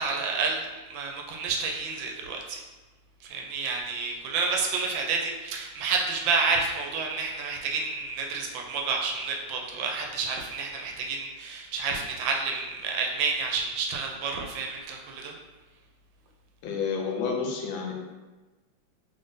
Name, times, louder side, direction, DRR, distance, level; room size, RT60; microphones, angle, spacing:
voice 1, 0.0-2.6 3.2-15.3, right 4 dB, 85° right, 1 dB, 1.4 m, -30 dB
voice 2, 16.6-17.9, left 5 dB, 85° left, 1 dB, 1.4 m, -30 dB
3.5 x 2.6 x 3.7 m, 1.2 s
omnidirectional pair, 2.0 m